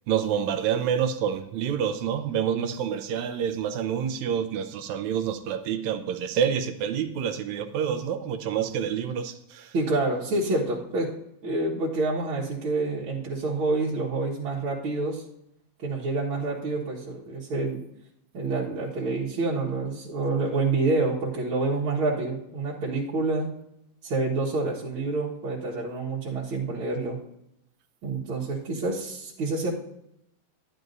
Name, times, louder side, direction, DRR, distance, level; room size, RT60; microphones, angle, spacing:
voice 1, 0.1-9.7, right 8 dB, 75° right, 7 dB, 1.9 m, -28 dB
voice 2, 9.7-11.1 11.4-15.2 15.8-17.8 18.3-23.5 24.0-27.2 28.0-29.7, right 3 dB, 50° right, -7 dB, 2.0 m, -27 dB
12.0 x 11.0 x 2.6 m, 0.80 s
omnidirectional pair, 3.5 m